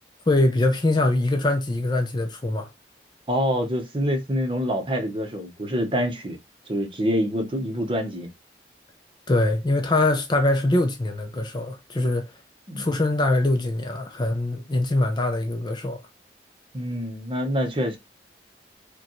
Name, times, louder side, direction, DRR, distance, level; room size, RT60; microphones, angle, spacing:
voice 1, 0.3-2.7 9.3-12.2 12.8-16.0, left 2 dB, 25° left, 0.5 m, -23 dB
voice 2, 3.3-6.4 6.7-8.3 12.7-12.9 16.7-18.0, equal, 30° right, 0.8 m, -26 dB
5.0 x 2.3 x 3.0 m
head